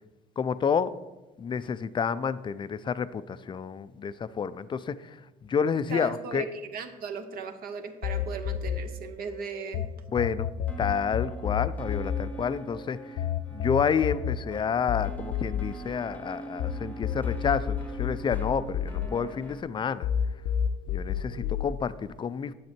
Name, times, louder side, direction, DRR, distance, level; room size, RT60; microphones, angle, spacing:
voice 1, 0.4-0.9 1.4-5.0 5.4-6.5 10.1-10.5 10.8-13.0 13.5-20.1 20.9-22.5, left 6 dB, 30° left, 15 dB, 0.4 m, -29 dB
voice 2, 5.9-9.8, right 5 dB, 60° right, 7 dB, 1.0 m, -37 dB
sound 1, 8.0-9.9 10.2-16.7 17.0-19.7 20.0-21.7, left 9 dB, 85° left, 0.6 m, -30 dB
sound 2, 10.7-19.6, right 2 dB, 10° left, 0.8 m, -44 dB
9.4 x 7.3 x 4.4 m, 1.1 s
cardioid pair, 110°, 17 cm